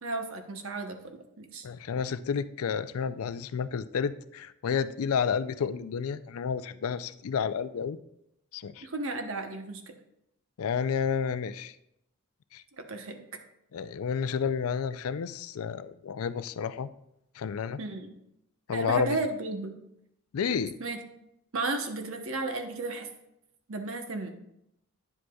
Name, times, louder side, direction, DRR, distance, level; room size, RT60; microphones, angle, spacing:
voice 1, 0.0-1.7 8.8-9.8 12.8-13.2 17.8-18.1 18.7-19.7 20.8-21.0 21.5-23.1 23.7-24.3, right 3 dB, 65° right, 5 dB, 0.9 m, -34 dB
voice 2, 1.6-8.0 8.5-8.9 10.6-11.8 12.5-12.6 13.7-16.9 17.4-17.8 18.7-19.2 20.3-20.8, left 6 dB, 75° left, 14 dB, 0.4 m, -30 dB
9.6 x 7.7 x 2.3 m, 0.80 s
head